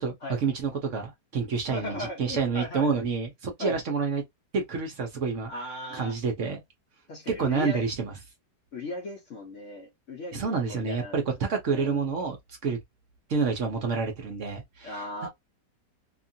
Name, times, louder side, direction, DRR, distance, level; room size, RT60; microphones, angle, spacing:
voice 1, 0.0-4.2 4.5-5.5 5.9-6.6 7.3-8.1 10.3-12.4 12.6-12.8 13.3-15.0, right 5 dB, 60° right, 0.8 m, -28 dB
voice 2, 1.7-2.9 3.6-3.8 5.5-6.1 7.1-7.8 8.7-11.2 11.7-12.0 14.8-15.3, left 1 dB, 60° left, 0.8 m, -37 dB
2.8 x 2.4 x 2.6 m
omnidirectional pair, 1.9 m